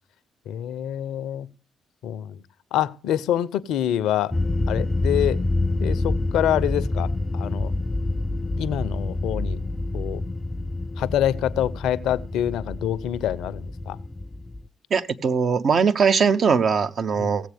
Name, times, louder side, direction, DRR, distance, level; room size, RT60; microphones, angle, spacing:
voice 1, 0.5-1.5 2.0-2.4 2.7-4.4 4.7-5.4 5.8-7.7 8.6-9.6 9.9-10.2 11.0-14.0 17.2-17.3, left 11 dB, 75° left, 0.5 m, -26 dB
sound 1, 4.3-14.6, left 2 dB, 20° left, 0.5 m, -27 dB
voice 2, 14.9-17.5, right 6 dB, 55° right, 0.8 m, -20 dB
16.5 x 7.5 x 3.4 m
hypercardioid pair, 50°, 0 cm